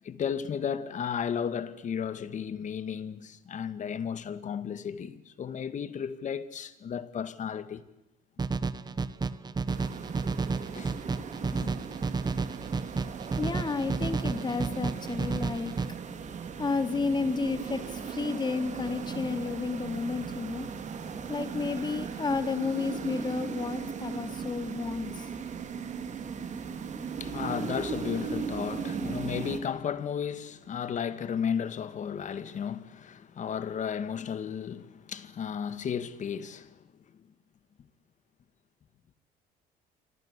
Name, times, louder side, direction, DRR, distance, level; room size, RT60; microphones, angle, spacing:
voice 1, 0.0-7.8 10.7-11.0 11.4-11.8 26.9-36.8, left 7 dB, 45° left, 2.1 m, -34 dB
sound 1, 8.4-15.9, right 4 dB, 25° right, 1.4 m, -32 dB
sound 2, 9.7-29.6, right 6 dB, 45° right, 3.6 m, -37 dB
voice 2, 13.4-15.7 16.6-20.7 21.3-25.3, left 4 dB, 25° left, 3.0 m, -31 dB
28.5 x 24.5 x 8.4 m
cardioid pair, 110°, 17 cm